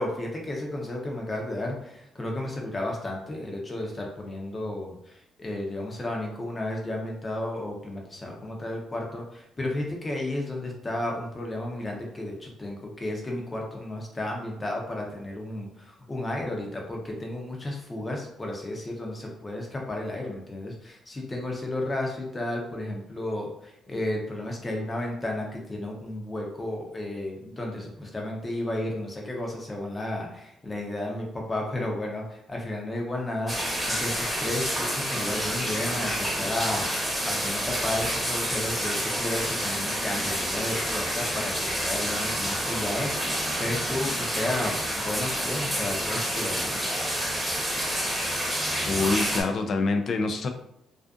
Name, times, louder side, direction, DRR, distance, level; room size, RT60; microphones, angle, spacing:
voice 1, 0.0-33.5 33.9-46.8, left 1 dB, 25° left, -1 dB, 0.7 m, -33 dB
sound 1, 33.5-49.4, equal, 10° right, 0.9 m, -28 dB
voice 2, 48.8-50.5, left 3 dB, 55° left, 6 dB, 0.3 m, -26 dB
2.4 x 2.4 x 2.4 m, 0.79 s
cardioid pair, 90°, 0 cm